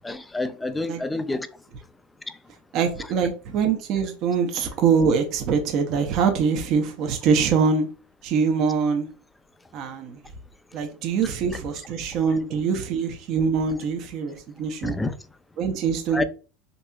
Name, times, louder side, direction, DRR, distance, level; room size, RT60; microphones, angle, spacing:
voice 1, 0.0-1.5 14.8-15.1 16.1-16.2, left 2 dB, 10° left, 0.4 m, -28 dB
voice 2, 2.7-7.9 8.2-9.1 9.7-10.2 10.7-15.0 15.6-16.2, right 6 dB, 55° right, 0.7 m, -23 dB
4.0 x 2.8 x 2.3 m
supercardioid pair, 105°, 0 cm